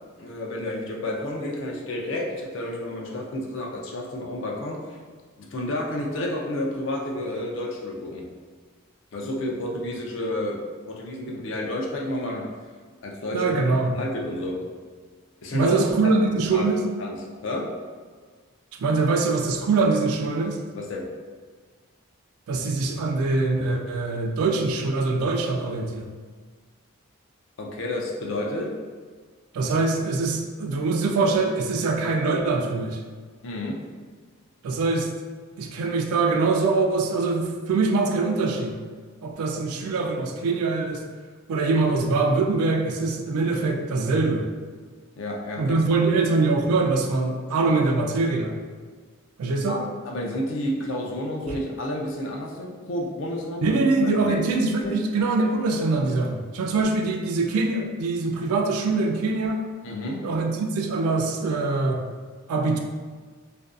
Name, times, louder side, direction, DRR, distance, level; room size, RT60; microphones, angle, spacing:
voice 1, 0.2-5.0 5.4-8.3 9.1-10.6 10.9-12.5 13.0-13.5 13.9-14.6 15.4-16.2 16.5-17.7 20.7-21.1 27.6-28.7 33.4-33.8 45.2-46.0 49.7-49.8 50.1-53.8 54.2-54.9 59.8-60.2, left 1 dB, 60° left, -1 dB, 0.4 m, -30 dB
voice 2, 13.3-13.9 15.5-16.8 18.8-20.6 22.5-26.1 29.5-33.0 34.6-35.1 35.6-38.8 39.2-41.0 41.5-44.5 45.6-48.6 49.4-49.8 51.5-51.6 53.6-59.6 60.2-62.0 62.5-62.8, right 3 dB, 90° right, 3 dB, 0.3 m, -23 dB
2.5 x 2.2 x 2.3 m, 1.5 s
head